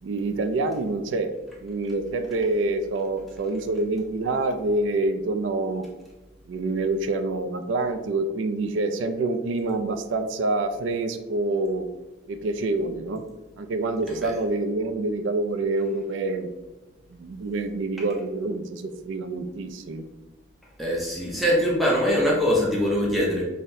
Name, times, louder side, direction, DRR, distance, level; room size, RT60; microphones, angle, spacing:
voice 1, 0.0-1.3 1.6-5.9 6.5-11.9 12.3-13.2 13.6-16.5 17.1-20.0, right 2 dB, 70° right, 8 dB, 0.3 m, -27 dB
voice 2, 20.8-23.4, equal, ahead, -5 dB, 0.5 m, -23 dB
5.4 x 2.1 x 2.6 m, 1.1 s
head